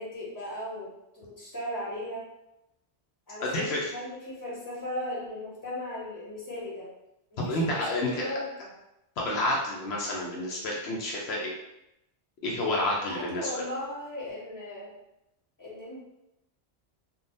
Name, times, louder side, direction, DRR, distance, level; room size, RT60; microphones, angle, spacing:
voice 1, 0.0-2.2 3.3-6.9 7.4-8.7 13.0-14.9 15.6-16.0, left 1 dB, 20° left, -7 dB, 1.0 m, -37 dB
voice 2, 3.4-3.9 7.4-8.3 9.2-11.5 12.4-13.6, left 1 dB, 75° left, -3 dB, 0.8 m, -29 dB
3.5 x 2.3 x 2.6 m, 0.88 s
omnidirectional pair, 1.1 m